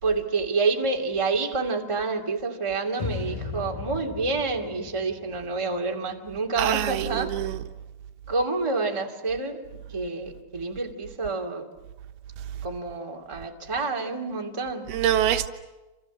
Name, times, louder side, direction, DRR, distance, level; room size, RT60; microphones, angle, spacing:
voice 1, 0.0-7.5 8.3-11.7 12.6-14.9, right 3 dB, 10° right, 2.0 m, -28 dB
sound 1, 3.0-6.2, left 5 dB, 65° left, 5.1 m, -36 dB
voice 2, 6.6-7.6 14.9-15.5, right 11 dB, 85° right, 3.1 m, -24 dB
28.0 x 28.0 x 7.4 m
omnidirectional pair, 4.4 m